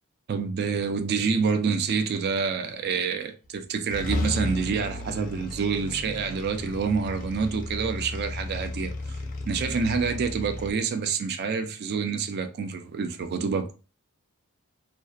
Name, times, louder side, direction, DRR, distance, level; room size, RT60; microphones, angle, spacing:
voice 1, 0.3-9.2 9.5-13.7, right 5 dB, 45° right, 0.3 m, -27 dB
sound 1, 3.4-3.6 3.9-10.7, left 2 dB, 40° left, 0.4 m, -34 dB
2.6 x 2.1 x 2.3 m
head